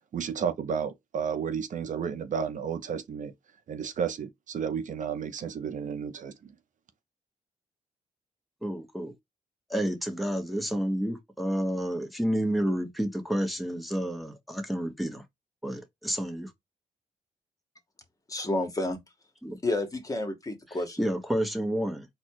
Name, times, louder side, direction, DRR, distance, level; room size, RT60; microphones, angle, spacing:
voice 1, 0.1-3.3 3.7-6.4, right 7 dB, 60° right, 0.6 m, -32 dB
voice 2, 8.6-9.1 9.7-15.2 15.6-16.5 19.4-19.6 21.0-22.1, equal, ahead, 1.2 m, -30 dB
voice 3, 18.3-19.0 19.6-21.1, left 2 dB, 25° left, 1.4 m, -30 dB
4.3 x 2.3 x 4.6 m
cardioid pair, 80°, 15 cm